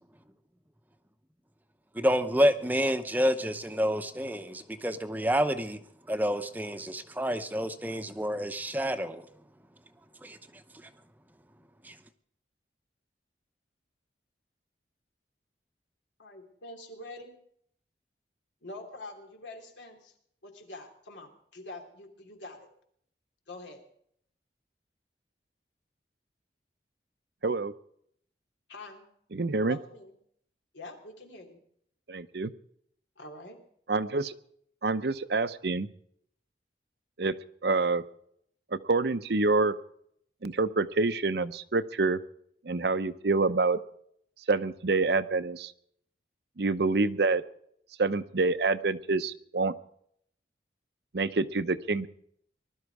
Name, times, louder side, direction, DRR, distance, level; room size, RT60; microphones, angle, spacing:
voice 1, 1.9-5.8 6.1-9.3 10.2-10.4 11.8-11.9, equal, 10° right, 9 dB, 0.8 m, -28 dB
voice 2, 16.2-17.4 18.6-20.1 20.4-22.7 23.5-23.8 28.7-29.0 29.7-30.1 30.7-31.6 33.2-33.6, left 2 dB, 90° left, 3 dB, 3.2 m, -45 dB
voice 3, 27.4-27.7 29.3-29.8 32.1-32.5 33.9-34.3 34.8-35.9 37.2-37.4 37.6-38.0 38.7-39.7 40.4-42.2 42.6-43.8 44.5-45.7 46.6-47.4 48.0-49.7 51.1-52.1, right 3 dB, 65° right, 12 dB, 0.7 m, -27 dB
20.5 x 12.5 x 4.8 m, 0.67 s
head